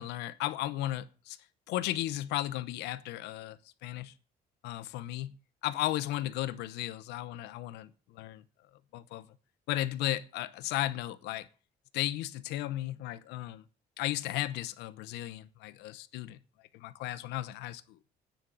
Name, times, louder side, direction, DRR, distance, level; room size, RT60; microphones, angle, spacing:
voice 1, 0.0-1.4 1.7-4.1 4.6-5.3 5.6-8.4 8.9-9.3 9.7-11.5 11.9-13.6 14.0-16.4 16.7-18.0, left 14 dB, 90° left, 0.9 m, -35 dB
9.6 x 7.5 x 8.6 m
cardioid pair, 110°, 17 cm